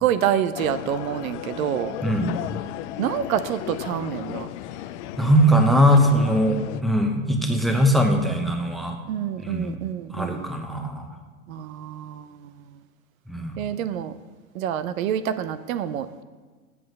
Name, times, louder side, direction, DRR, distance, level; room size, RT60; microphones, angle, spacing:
voice 1, 0.0-2.0 3.0-4.5 9.1-10.5 11.5-12.5 13.6-14.1 14.5-16.2, right 10 dB, 65° right, 12 dB, 0.6 m, -27 dB
sound 1, 0.6-6.8, left 13 dB, 55° left, 0.5 m, -35 dB
voice 2, 2.0-2.3 5.2-9.0 9.4-9.8 10.1-11.2 13.3-13.5, equal, ahead, 3 dB, 0.9 m, -20 dB
8.2 x 7.5 x 5.2 m, 1.4 s
hypercardioid pair, 110°, 44 cm